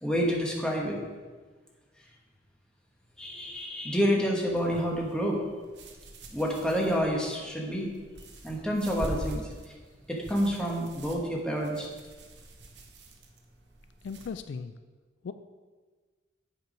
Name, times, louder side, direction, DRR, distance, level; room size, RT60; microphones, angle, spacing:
voice 1, 0.0-1.0 3.2-5.4 6.3-7.9 8.4-9.5 10.1-11.9, equal, 5° left, -2 dB, 1.1 m, -28 dB
sound 1, 4.5-14.3, right 1 dB, 65° right, 0.9 m, -44 dB
voice 2, 14.0-14.7 15.2-15.3, left 5 dB, 70° left, 10 dB, 0.3 m, -37 dB
8.2 x 4.6 x 5.1 m, 1.4 s
head